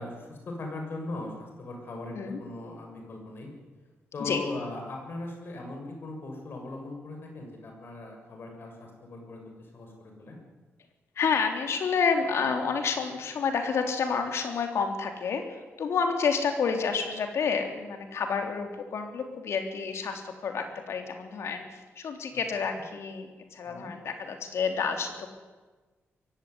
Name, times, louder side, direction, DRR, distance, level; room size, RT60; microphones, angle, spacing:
voice 1, 0.0-3.5 4.1-10.4 22.3-22.4 23.7-23.9, left 2 dB, 50° left, 2 dB, 7.1 m, -39 dB
voice 2, 11.2-25.3, left 5 dB, 70° left, 5 dB, 3.5 m, -29 dB
22.0 x 16.5 x 9.7 m, 1.3 s
wide cardioid pair, 135°, 5 cm